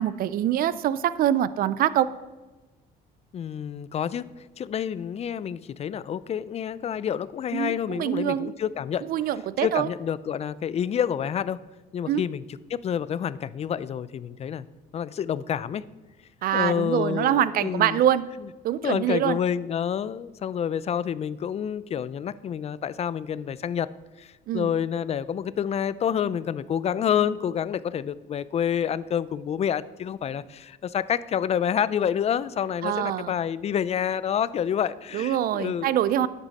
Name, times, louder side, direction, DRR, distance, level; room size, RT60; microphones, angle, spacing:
voice 1, 0.0-2.1 7.5-8.5 9.0-9.9 12.1-12.2 16.4-18.3 18.6-19.4 24.5-24.7 32.8-33.4 35.1-36.3, right 11 dB, 60° right, 17 dB, 0.5 m, -24 dB
voice 2, 3.3-4.2 4.6-9.1 9.6-11.6 11.9-12.4 12.7-14.7 14.9-15.8 16.5-18.0 18.8-23.9 24.2-35.9 36.2-36.3, left 8 dB, 40° left, 17 dB, 0.4 m, -28 dB
11.5 x 8.2 x 4.2 m, 1.2 s
cardioid pair, 110°, 17 cm